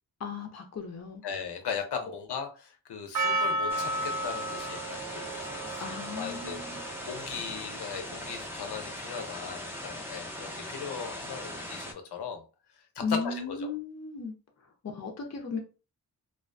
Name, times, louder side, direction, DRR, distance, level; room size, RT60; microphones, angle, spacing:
voice 1, 0.2-1.2 5.8-6.9 13.0-14.3 14.8-15.6, left 4 dB, 45° left, 0.6 m, -35 dB
voice 2, 1.2-5.8 6.2-6.6 7.0-12.4 12.7-13.7, left 6 dB, 90° left, 0.6 m, -38 dB
Percussion, 3.1-8.4, right 1 dB, 50° right, 0.5 m, -34 dB
sound 1, 3.7-11.9, left 1 dB, 5° right, 0.6 m, -40 dB
2.4 x 2.2 x 2.4 m
cardioid pair, 55°, 39 cm